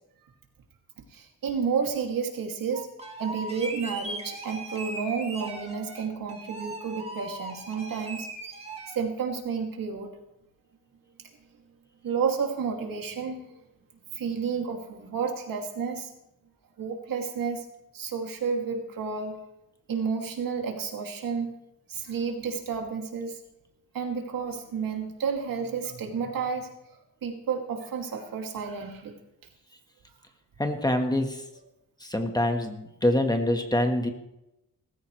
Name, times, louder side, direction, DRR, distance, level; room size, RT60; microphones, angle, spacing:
voice 1, 1.1-2.9 3.2-8.3 8.9-10.1 12.0-13.5 14.1-16.1 16.8-17.6 17.9-19.4 19.9-21.5 21.9-23.4 23.9-26.7 27.2-29.1, right 6 dB, 75° right, 2 dB, 2.6 m, -31 dB
sound 1, 2.7-9.0, right 2 dB, 20° right, 2.5 m, -39 dB
voice 2, 30.6-31.4 32.0-34.1, left 1 dB, 10° left, 5 dB, 1.4 m, -25 dB
18.5 x 15.0 x 3.3 m, 0.88 s
wide cardioid pair, 135°, 34 cm